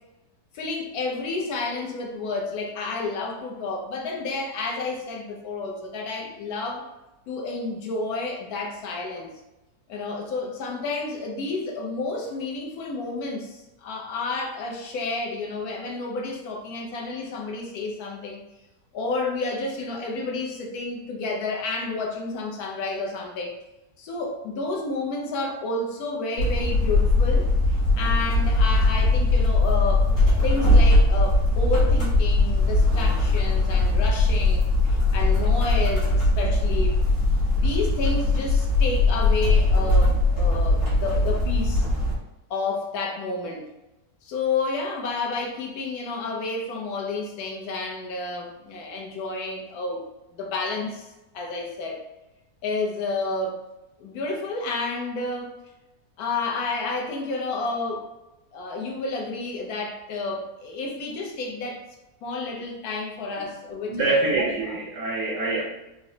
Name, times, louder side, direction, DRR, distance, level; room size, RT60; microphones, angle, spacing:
voice 1, 0.5-6.8 7.3-9.3 9.9-18.4 18.9-23.6 24.0-37.0 37.5-41.9 42.5-43.7 44.2-50.0 50.3-51.1 51.3-52.1 52.6-53.6 54.0-55.6 56.2-58.1 58.5-61.9 62.2-64.8, left 3 dB, 75° left, 1 dB, 1.1 m, -30 dB
sound 1, 26.4-42.1, left 2 dB, 60° left, 1.3 m, -20 dB
voice 2, 63.9-65.6, right 3 dB, 70° right, -2 dB, 0.8 m, -25 dB
3.8 x 2.0 x 2.6 m, 0.98 s
omnidirectional pair, 1.6 m